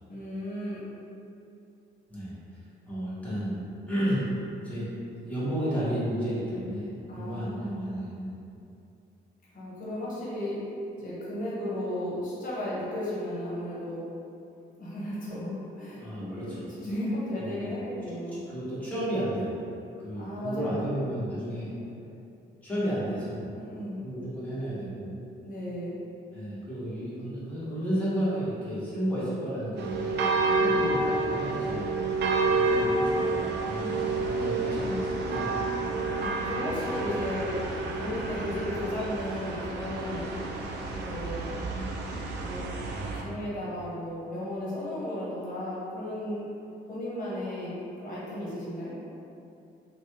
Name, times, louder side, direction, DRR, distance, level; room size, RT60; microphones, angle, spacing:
voice 1, 0.1-0.8 7.1-8.0 9.5-10.6 10.9-14.0 14.8-18.4 20.1-21.2 23.5-24.0 25.4-25.9 30.5-30.9 36.2-37.6 38.0-40.2 40.9-41.5 42.4-42.6 43.1-46.5 46.9-48.9, left 1 dB, 40° left, -7 dB, 1.1 m, -34 dB
voice 2, 2.9-3.6 3.9-4.3 4.6-4.9 5.2-6.9 7.1-8.3 16.0-16.7 17.4-17.7 18.5-19.6 20.0-21.7 22.6-23.5 24.0-25.1 26.3-30.0 30.7-31.9 32.5-35.7 41.7-42.0, equal, 5° left, -11 dB, 1.3 m, -32 dB
sound 1, 29.8-43.2, right 3 dB, 60° right, 0.4 m, -29 dB
3.1 x 2.2 x 3.0 m, 2.7 s
cardioid pair, 90°, 20 cm